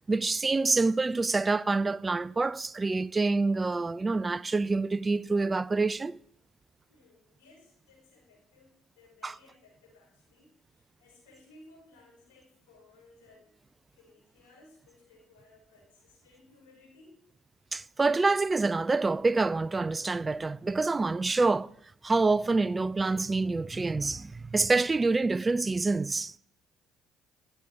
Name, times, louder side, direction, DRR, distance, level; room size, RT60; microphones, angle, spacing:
voice 1, 0.1-6.2 9.2-9.4 17.7-21.7 22.0-26.3, right 3 dB, 25° right, 0.3 m, -27 dB
voice 2, 6.9-13.5 13.9-17.1, left 2 dB, 85° left, 5.1 m, -59 dB
12.5 x 9.1 x 3.5 m
hypercardioid pair, 55°, 0 cm